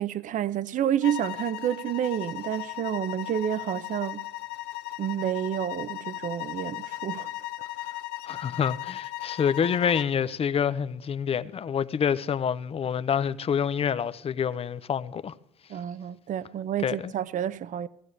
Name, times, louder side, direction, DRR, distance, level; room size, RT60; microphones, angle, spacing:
voice 1, 0.0-4.2 5.0-7.3 15.7-17.9, right 10 dB, 50° right, 0.6 m, -29 dB
sound 1, 1.0-10.2, left 17 dB, 75° left, 0.9 m, -37 dB
voice 2, 8.2-15.3 16.8-17.1, left 7 dB, 35° left, 0.6 m, -27 dB
16.5 x 15.0 x 3.3 m
cardioid pair, 110°, 17 cm